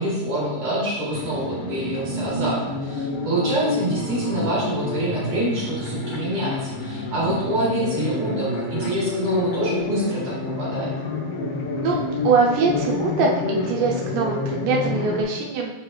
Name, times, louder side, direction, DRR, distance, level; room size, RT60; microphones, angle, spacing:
voice 1, 0.0-10.9, right 1 dB, 45° right, -7 dB, 2.7 m, -26 dB
sound 1, 1.1-15.2, left 3 dB, 85° left, 1.4 m, -28 dB
voice 2, 12.2-15.7, right 4 dB, 80° right, -1 dB, 2.3 m, -22 dB
6.7 x 4.6 x 3.1 m, 1.0 s
omnidirectional pair, 4.0 m